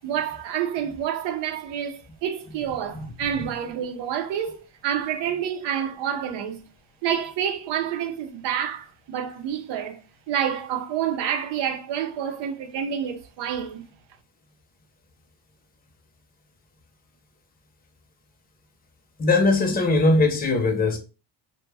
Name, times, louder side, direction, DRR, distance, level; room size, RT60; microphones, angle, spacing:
voice 1, 0.0-6.6 7.0-10.0 10.3-13.8, right 9 dB, 85° right, 0.7 m, -28 dB
voice 2, 19.2-21.0, left 2 dB, 20° left, 0.6 m, -20 dB
2.2 x 2.1 x 3.3 m
cardioid pair, 110°, 41 cm